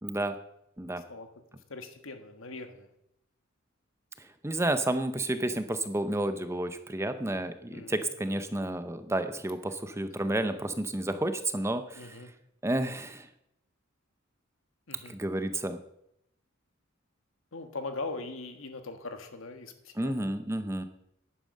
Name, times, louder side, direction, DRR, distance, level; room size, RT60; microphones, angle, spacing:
voice 1, 0.0-0.3 0.8-1.0 4.2-12.2 12.6-13.3 15.1-15.8 20.0-20.8, right 1 dB, 15° right, 10 dB, 0.7 m, -31 dB
voice 2, 1.7-2.9 5.2-5.3 7.7-8.1 11.9-12.3 14.9-15.1 17.5-20.1, left 3 dB, 75° left, 7 dB, 1.5 m, -40 dB
11.0 x 9.2 x 6.5 m, 0.80 s
head